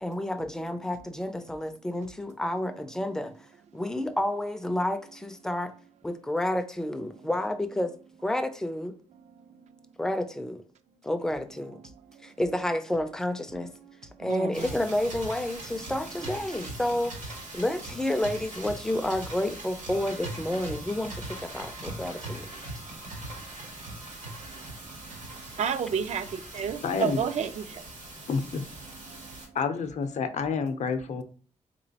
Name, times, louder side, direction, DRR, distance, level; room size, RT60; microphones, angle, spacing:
voice 1, 0.0-3.3 3.7-5.7 6.0-7.9 8.2-9.0 10.0-10.6 11.0-11.9 12.2-13.7 14.2-17.2 17.5-22.5, left 1 dB, 5° left, 0.4 m, -30 dB
voice 2, 14.2-14.6 25.6-27.7, right 7 dB, 65° right, 0.4 m, -30 dB
sound 1, 14.5-29.5, right 2 dB, 85° right, 1.7 m, -41 dB
voice 3, 26.8-27.2 28.3-28.6 29.5-31.2, left 5 dB, 70° left, 0.5 m, -29 dB
3.7 x 3.0 x 2.7 m
wide cardioid pair, 150°, 12 cm